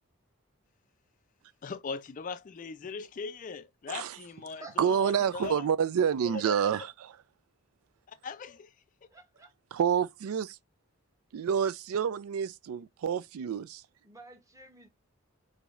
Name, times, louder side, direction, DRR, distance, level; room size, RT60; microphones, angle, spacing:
voice 1, 1.6-5.7 6.2-6.9 8.1-8.7, left 5 dB, 35° left, 0.4 m, -40 dB
voice 2, 4.8-6.9 9.7-10.6 11.3-13.8, right 8 dB, 85° right, 0.3 m, -28 dB
voice 3, 9.1-9.5 14.0-14.9, right 2 dB, 15° right, 1.0 m, -50 dB
5.0 x 2.7 x 2.4 m
head